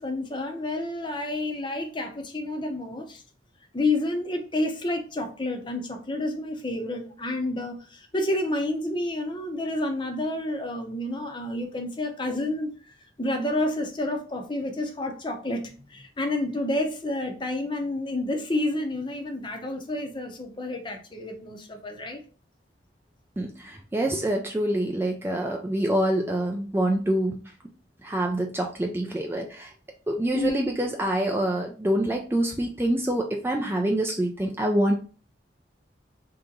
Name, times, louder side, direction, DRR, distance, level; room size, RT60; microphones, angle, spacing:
voice 1, 0.0-3.2 3.7-12.7 13.2-22.2 30.3-30.5, left 2 dB, 25° left, 4 dB, 0.7 m, -29 dB
voice 2, 23.4-27.5 28.0-29.7 30.1-34.9, right 1 dB, 10° right, 1 dB, 0.4 m, -26 dB
3.4 x 2.8 x 3.9 m, 0.38 s
head